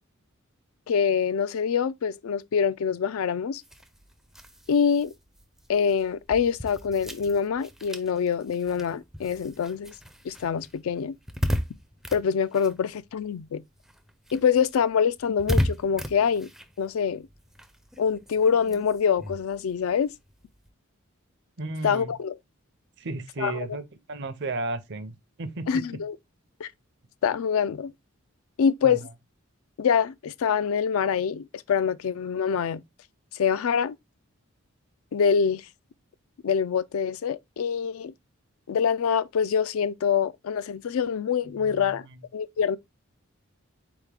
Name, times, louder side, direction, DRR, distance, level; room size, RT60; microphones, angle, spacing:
voice 1, 0.9-3.6 4.7-5.1 5.7-9.9 10.2-11.2 12.1-13.6 14.3-16.5 16.8-17.3 18.0-20.1 21.8-22.4 23.4-23.8 25.7-26.2 26.6-26.7 27.2-27.9 28.6-29.1 29.8-32.8 33.3-34.0 35.1-35.6 36.4-38.1 38.7-42.1 42.3-42.8, left 7 dB, 75° left, 0.4 m, -25 dB
sound 1, 3.6-13.5 13.8-20.7, equal, ahead, 0.4 m, -35 dB
voice 2, 21.6-22.1 23.0-25.8 28.8-29.0 41.4-42.0, right 3 dB, 55° right, 0.6 m, -34 dB
4.4 x 3.5 x 3.2 m
head